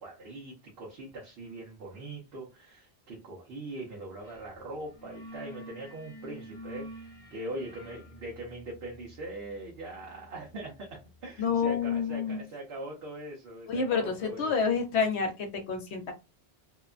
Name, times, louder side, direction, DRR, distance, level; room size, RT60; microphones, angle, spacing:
voice 1, 0.0-14.5, right 2 dB, 70° right, 1.0 m, -41 dB
sound 1, 4.2-4.5 4.8-11.4, equal, 25° left, 0.7 m, -48 dB
voice 2, 11.4-12.4 13.7-16.1, left 5 dB, 85° left, 1.0 m, -28 dB
2.8 x 2.2 x 2.4 m
omnidirectional pair, 1.1 m